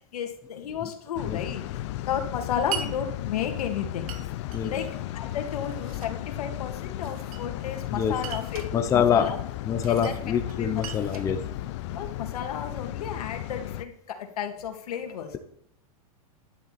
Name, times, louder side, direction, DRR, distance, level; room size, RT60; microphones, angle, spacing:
voice 1, 0.0-1.8 2.0-4.3 4.6-4.9 5.1-8.6 8.9-9.4 9.9-10.2 10.6-10.8 11.1-11.2 11.9-15.4, left 8 dB, 80° left, 5 dB, 2.4 m, -33 dB
sound 1, 1.1-13.8, left 14 dB, 50° left, 0.6 m, -35 dB
Glass, 2.7-2.9 4.1-4.6 5.5-6.2 7.0-7.7 8.2-8.7 9.8-10.2 10.5-12.1, right 9 dB, 70° right, 1.8 m, -39 dB
voice 2, 8.7-9.3 9.7-11.4, left 8 dB, 15° left, 7 dB, 0.8 m, -24 dB
11.0 x 10.0 x 4.3 m, 0.69 s
supercardioid pair, 155°, 19 cm